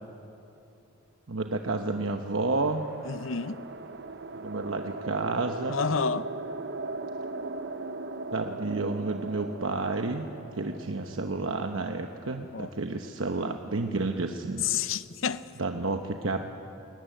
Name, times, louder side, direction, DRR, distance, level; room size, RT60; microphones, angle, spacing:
voice 1, 1.3-2.9 4.4-5.8 8.3-14.6 15.6-16.5, right 3 dB, 85° right, 1.0 m, -30 dB
sound 1, 1.9-12.3, right 3 dB, 60° right, 0.8 m, -39 dB
voice 2, 3.1-3.6 5.7-6.3 12.5-12.7 14.6-15.4, left 6 dB, 80° left, 0.7 m, -29 dB
21.5 x 19.0 x 9.1 m
head